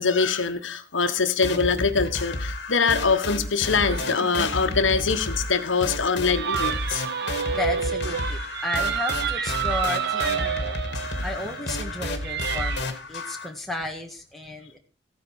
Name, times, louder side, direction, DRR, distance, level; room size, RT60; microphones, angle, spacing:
voice 1, 0.0-7.0, left 5 dB, 80° left, 8 dB, 1.2 m, -23 dB
sound 1, 1.4-13.5, left 2 dB, 55° left, 2.1 m, -31 dB
sound 2, 3.9-12.8, right 7 dB, 55° right, 1.1 m, -30 dB
voice 2, 7.5-10.8 11.2-14.8, left 2 dB, ahead, 0 dB, 1.8 m, -33 dB
14.5 x 9.7 x 4.8 m, 0.37 s
head